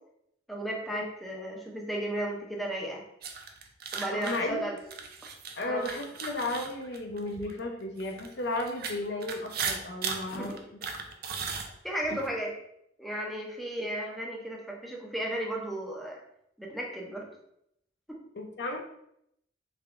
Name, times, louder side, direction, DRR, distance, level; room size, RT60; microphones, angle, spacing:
voice 1, 0.5-3.0 3.9-4.8 5.6-5.9 10.4-10.5 11.8-12.5 13.0-16.2 16.6-17.3 18.1-18.2, right 1 dB, ahead, -1 dB, 0.5 m, -34 dB
sound 1, 3.2-7.5 8.0-12.3, right 5 dB, 55° right, 0.4 m, -37 dB
voice 2, 4.1-4.7 5.6-10.5 18.3-18.8, left 2 dB, 65° left, 3 dB, 0.6 m, -34 dB
3.4 x 3.4 x 2.5 m, 0.76 s
head